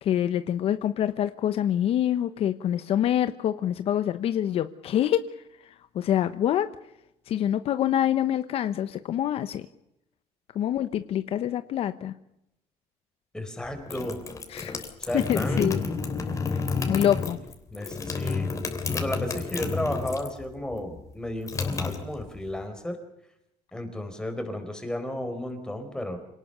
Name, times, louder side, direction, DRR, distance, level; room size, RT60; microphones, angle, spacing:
voice 1, 0.0-5.3 5.9-6.7 7.3-9.6 10.5-12.1 14.5-14.8 15.1-15.9 16.9-17.4, left 10 dB, 55° left, 12 dB, 0.9 m, -26 dB
voice 2, 13.3-14.2 15.0-15.7 16.9-17.0 17.7-18.5 18.9-23.0 23.7-26.2, left 1 dB, 5° left, 6 dB, 4.4 m, -33 dB
sound 1, 13.6-20.4 20.7-22.6, left 4 dB, 25° left, 3.4 m, -30 dB
27.0 x 18.5 x 6.8 m, 0.83 s
cardioid pair, 145°, 12 cm